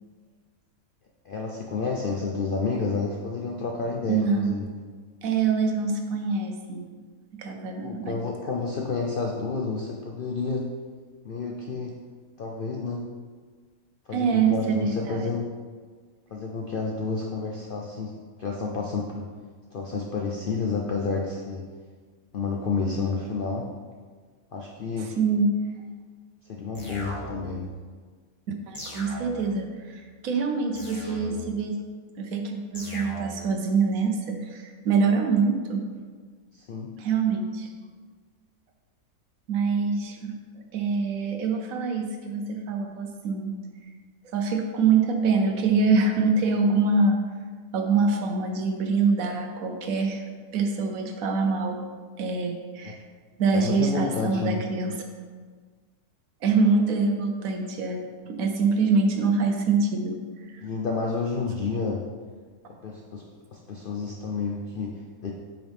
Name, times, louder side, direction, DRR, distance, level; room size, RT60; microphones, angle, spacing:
voice 1, 1.2-4.7 7.8-10.7 11.2-12.0 12.4-13.0 14.1-15.5 16.3-19.3 19.7-21.7 22.3-23.7 24.5-25.2 26.5-27.7 36.5-36.9 52.8-52.9 53.5-54.6 60.6-62.1 62.7-63.2 63.5-65.3, left 4 dB, 65° left, 0 dB, 0.5 m, -30 dB
voice 2, 4.1-4.7 5.2-6.8 7.4-8.2 14.1-15.3 25.2-25.5 28.7-31.7 32.2-35.8 37.0-37.7 39.5-40.3 40.7-43.6 44.3-47.2 47.7-50.2 50.5-51.8 52.2-53.0 53.4-55.0 56.4-60.2 60.5-60.6 61.3-61.5, right 4 dB, 70° right, 4 dB, 1.2 m, -25 dB
sound 1, 26.7-27.6 28.7-29.6 30.7-31.6 32.7-33.6, left 1 dB, 25° left, 1.1 m, -39 dB
7.6 x 5.0 x 3.5 m, 1.5 s
omnidirectional pair, 1.6 m